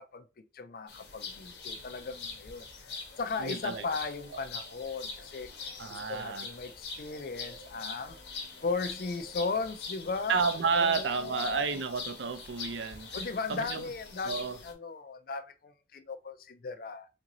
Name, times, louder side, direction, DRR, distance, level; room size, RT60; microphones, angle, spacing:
voice 1, 0.0-5.5 5.9-8.2 8.6-11.7 13.1-17.1, left 4 dB, 50° left, 0.4 m, -37 dB
sound 1, 0.9-14.7, left 4 dB, 70° left, 0.9 m, -43 dB
voice 2, 3.4-3.9 5.8-6.5 10.3-13.1 13.5-13.8 14.2-14.6, right 5 dB, 80° right, 0.5 m, -31 dB
3.7 x 2.6 x 2.9 m
head